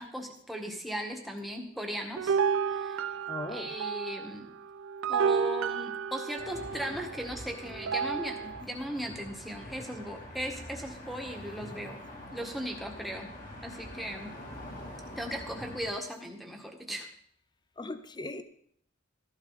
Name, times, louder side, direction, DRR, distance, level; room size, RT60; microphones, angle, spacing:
voice 1, 0.0-2.4 2.7-3.1 3.5-4.5 5.1-12.0 12.3-13.3 13.6-14.3 15.2-17.1, equal, ahead, 1 dB, 1.7 m, -38 dB
sound 1, 2.2-8.6, right 6 dB, 75° right, 0.4 m, -31 dB
voice 2, 3.3-3.7 17.8-18.4, left 2 dB, 20° left, 12 dB, 0.6 m, -38 dB
sound 2, 6.4-15.9, left 1 dB, 45° left, 2.8 m, -45 dB
14.5 x 11.5 x 4.2 m, 0.63 s
head